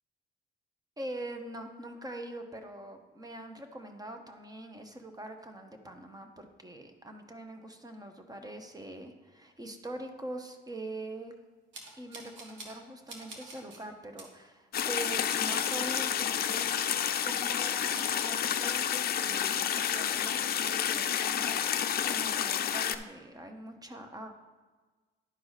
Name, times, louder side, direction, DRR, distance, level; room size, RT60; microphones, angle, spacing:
voice 1, 1.0-11.3 12.0-16.7 17.2-24.3, right 1 dB, 20° right, 5 dB, 1.0 m, -43 dB
sound 1, 11.7-12.8 13.1-13.8 14.2-14.3 14.8-16.1 16.8-17.4 17.7-18.9 19.2-19.3 19.7-21.6 22.0-22.5, right 3 dB, 70° right, 1.5 m, -49 dB
sound 2, 14.7-22.9, left 9 dB, 50° left, 0.5 m, -30 dB
11.0 x 4.7 x 4.1 m, 1.3 s
cardioid pair, 90°, 20 cm